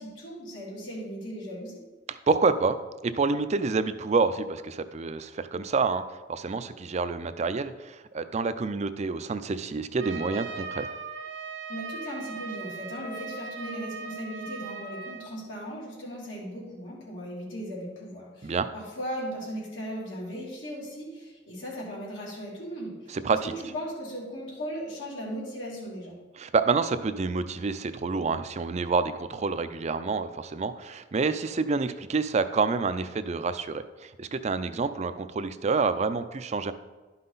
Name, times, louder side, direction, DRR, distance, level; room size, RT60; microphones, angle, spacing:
voice 1, 0.0-1.8 11.7-26.2, equal, 85° left, -5 dB, 2.8 m, -37 dB
voice 2, 2.1-2.8 3.0-6.0 6.3-10.9 18.4-18.7 23.1-23.5 26.4-36.7, right 4 dB, 35° right, 11 dB, 0.4 m, -28 dB
Trumpet, 10.0-15.3, right 4 dB, 85° right, 1.2 m, -38 dB
11.0 x 5.7 x 4.0 m, 1.2 s
head